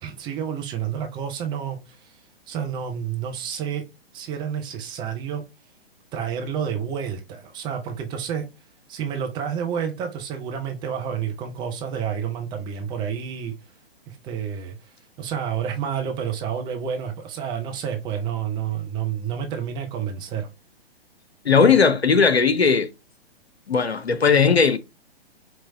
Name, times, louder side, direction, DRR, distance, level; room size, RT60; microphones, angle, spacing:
voice 1, 0.0-2.1 2.5-3.8 4.1-5.4 6.1-8.5 8.9-13.5 14.1-14.8 15.2-20.5, right 8 dB, 15° right, 0.6 m, -29 dB
voice 2, 21.4-22.9 23.7-24.8, left 5 dB, 85° left, 0.7 m, -17 dB
4.6 x 3.0 x 2.7 m
figure-of-eight pair, 120°, 31 cm